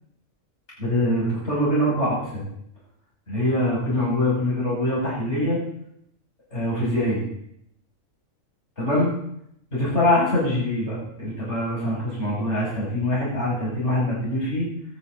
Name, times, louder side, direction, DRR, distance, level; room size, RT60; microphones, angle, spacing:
voice 1, 0.8-2.5 3.3-5.6 6.5-7.2 8.8-9.2 9.7-14.7, left 1 dB, 50° left, -6 dB, 7.9 m, -24 dB
25.5 x 10.5 x 4.2 m, 0.73 s
omnidirectional pair, 1.4 m